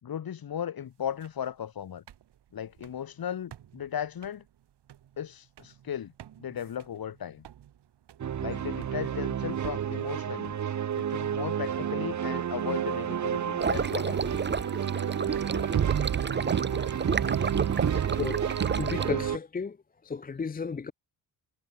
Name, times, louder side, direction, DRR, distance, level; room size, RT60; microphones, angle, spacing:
voice 1, 0.0-2.0 2.5-4.4 5.2-6.1 6.4-7.5 8.4-10.6 10.9-14.4, left 9 dB, 60° left, 3.0 m, -36 dB
sound 1, 0.8-19.2, right 11 dB, 85° right, 6.3 m, -56 dB
sound 2, 8.2-19.4, right 9 dB, 45° right, 1.0 m, -30 dB
sound 3, 13.6-19.1, right 5 dB, 25° right, 1.5 m, -31 dB
voice 2, 18.1-18.5 18.8-19.8 20.0-20.9, left 5 dB, 20° left, 0.6 m, -33 dB
wide cardioid pair, 135°, 40 cm